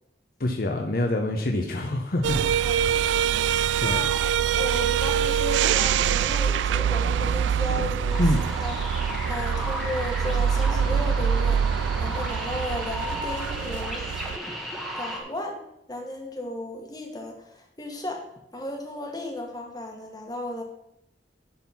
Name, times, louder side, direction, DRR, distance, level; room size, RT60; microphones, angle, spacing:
voice 1, 0.4-2.4 3.8-4.0 8.2-8.4, left 1 dB, 55° left, 3 dB, 0.8 m, -25 dB
sound 1, 2.2-14.4, right 8 dB, 85° right, 0.3 m, -24 dB
voice 2, 3.8-8.3 8.6-8.8 9.3-14.1 15.0-15.6 15.9-18.3 18.5-20.6, left 1 dB, 20° left, 2 dB, 1.4 m, -35 dB
sound 2, 8.1-15.2, equal, ahead, 1.2 m, -34 dB
11.0 x 4.1 x 5.8 m, 0.81 s
head